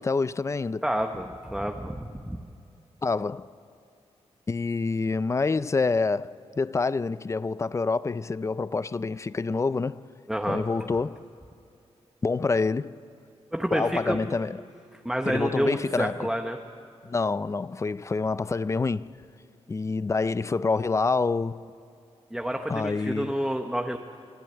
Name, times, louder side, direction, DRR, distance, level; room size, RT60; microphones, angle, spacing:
voice 1, 0.0-0.8 3.0-3.5 4.5-10.0 10.5-11.2 12.2-12.9 13.7-14.6 15.3-16.3 17.0-19.1 19.7-21.6 22.7-23.3, left 4 dB, 25° left, 0.4 m, -27 dB
voice 2, 0.8-2.4 10.3-10.6 13.5-14.2 15.0-16.6 22.3-24.0, equal, 5° right, 0.9 m, -29 dB
24.0 x 15.5 x 8.4 m
wide cardioid pair, 140°, 11 cm